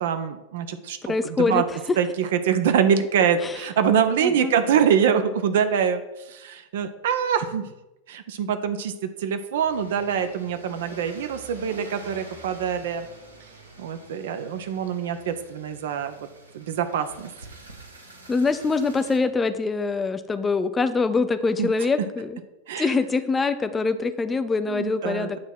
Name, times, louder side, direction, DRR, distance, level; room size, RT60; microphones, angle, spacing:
voice 1, 0.0-1.6 2.0-7.7 8.1-13.1 13.8-16.3 16.5-17.3 21.6-21.7 22.7-22.9 24.7-25.4, right 8 dB, 55° right, 9 dB, 0.4 m, -24 dB
voice 2, 1.0-2.0 3.4-3.6 4.2-4.5 18.3-22.4 22.8-25.4, left 4 dB, 15° left, 11 dB, 0.5 m, -24 dB
sound 1, 9.5-19.2, right 2 dB, 80° right, 1.2 m, -46 dB
8.5 x 2.9 x 5.9 m, 1.0 s
figure-of-eight pair, 90°, 0 cm